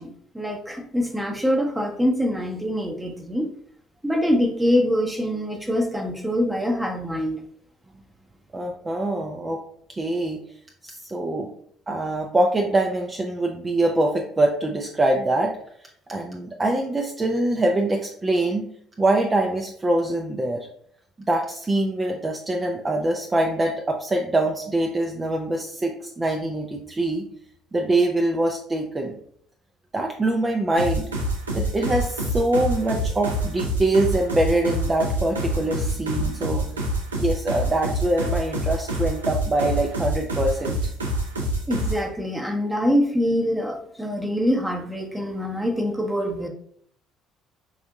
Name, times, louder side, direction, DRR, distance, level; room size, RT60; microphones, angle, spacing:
voice 1, 0.0-3.5 4.0-7.4 41.7-46.5, equal, 5° right, 2 dB, 0.8 m, -24 dB
voice 2, 8.5-9.6 10.0-10.4 10.8-11.5 11.9-15.5 16.1-18.6 19.0-20.7 21.3-27.2 27.7-29.1 29.9-31.1 31.5-36.7 37.2-40.8, right 2 dB, 25° right, 1 dB, 0.4 m, -24 dB
sound 1, 30.8-42.0, right 1 dB, 90° right, 0.4 m, -26 dB
4.8 x 2.6 x 2.3 m, 0.65 s
figure-of-eight pair, 55°, 0 cm